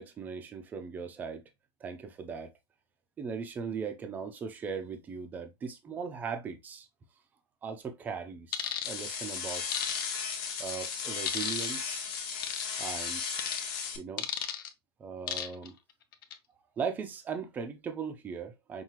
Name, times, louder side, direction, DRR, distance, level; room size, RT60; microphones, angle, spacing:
voice 1, 0.0-1.4 1.8-2.5 3.2-6.9 7.6-9.7 10.6-12.1 12.8-13.3 14.0-14.3 15.0-15.8 16.8-18.8, right 6 dB, 10° right, 0.5 m, -38 dB
sound 1, 8.5-8.9 9.7-10.4 11.3-11.8 12.4-12.7 13.4-13.6 14.2-14.7 15.3-15.7 16.1-16.3, left 9 dB, 55° left, 0.8 m, -34 dB
sound 2, 8.8-14.0, left 6 dB, 40° left, 1.0 m, -35 dB
5.6 x 2.3 x 3.0 m
hypercardioid pair, 155°, 14 cm